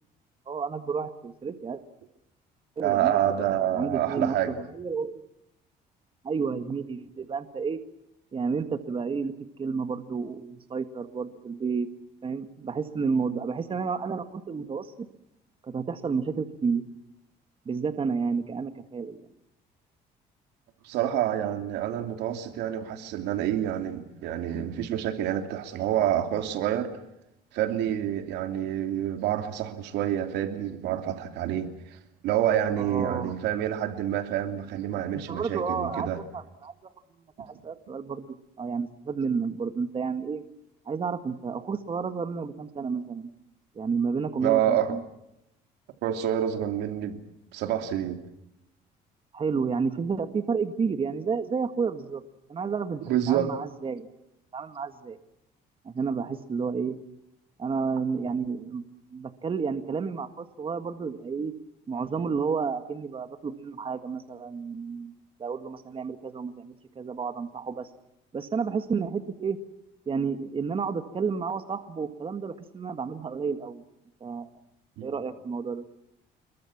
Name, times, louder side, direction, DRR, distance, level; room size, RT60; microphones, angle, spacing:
voice 1, 0.5-1.8 2.8-5.3 6.2-7.8 8.3-9.3 9.6-11.9 12.2-14.9 15.6-16.9 17.7-19.3 32.8-33.4 35.3-36.7 37.4-40.4 40.9-43.3 43.8-45.0 49.3-52.2 52.5-54.1 54.5-55.2 55.9-57.0 57.6-58.8 59.1-61.5 61.9-65.1 65.4-67.9 68.3-69.6 70.1-73.8 74.2-74.5 75.0-75.8, right 5 dB, 30° right, 1.8 m, -31 dB
voice 2, 2.8-4.6 20.8-26.9 27.5-36.2 44.4-45.0 46.0-47.2 47.5-48.2 53.0-53.5 75.0-75.1, right 11 dB, 85° right, 3.0 m, -28 dB
27.5 x 22.0 x 7.3 m
cardioid pair, 110°, 17 cm